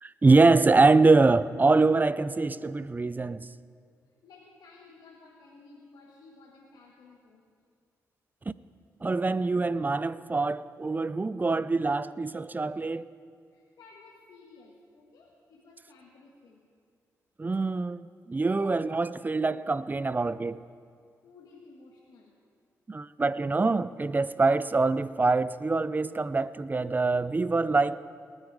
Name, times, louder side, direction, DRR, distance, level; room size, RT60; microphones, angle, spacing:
voice 1, 0.0-3.5 9.0-13.1 17.4-20.6 22.9-28.0, right 3 dB, 25° right, 0.5 m, -24 dB
voice 2, 4.1-7.4 13.5-16.6 21.2-22.3, left 3 dB, 80° left, 1.6 m, -54 dB
20.0 x 9.5 x 4.9 m
cardioid pair, 55°, 7 cm